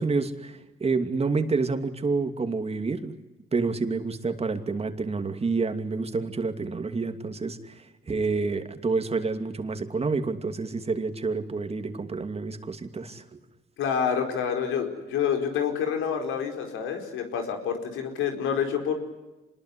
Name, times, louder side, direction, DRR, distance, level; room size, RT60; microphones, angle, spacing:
voice 1, 0.0-3.2 3.5-13.4, right 4 dB, 30° right, 7 dB, 2.7 m, -28 dB
voice 2, 13.8-18.9, left 7 dB, 90° left, 5 dB, 4.7 m, -28 dB
26.5 x 21.0 x 9.9 m, 1.1 s
cardioid pair, 90°, 20 cm